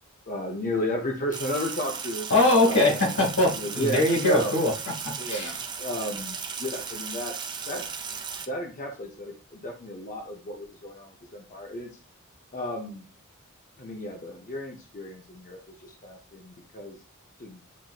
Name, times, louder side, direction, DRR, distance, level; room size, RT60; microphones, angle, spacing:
voice 1, 0.3-2.3 2.6-3.2 3.6-4.5 5.2-7.3 7.7-7.8 8.5-11.9 12.5-13.0 13.8-17.0 17.4-17.6, left 1 dB, 35° left, 2 dB, 0.6 m, -33 dB
Sink (filling or washing), 1.3-8.5, right 6 dB, 20° right, 0.4 m, -36 dB
voice 2, 2.3-5.6, left 2 dB, 85° left, -2 dB, 2.1 m, -22 dB
7.5 x 2.5 x 2.3 m, 0.33 s
head